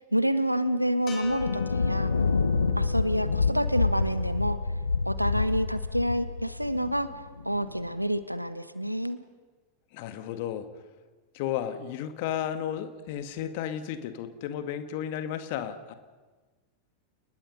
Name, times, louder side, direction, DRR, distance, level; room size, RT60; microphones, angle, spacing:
voice 1, 0.1-2.2 2.8-4.6 5.0-7.1 7.4-9.2, equal, 90° right, 13 dB, 1.2 m, -28 dB
sound 1, 1.1-5.4, left 6 dB, 30° left, 5.6 m, -45 dB
Thunder, 1.2-7.9, left 4 dB, 75° left, 1.0 m, -28 dB
voice 2, 9.9-10.7 11.3-15.9, left 10 dB, 50° left, 9 dB, 1.9 m, -33 dB
29.5 x 20.0 x 5.5 m, 1.3 s
figure-of-eight pair, 90°, 0 cm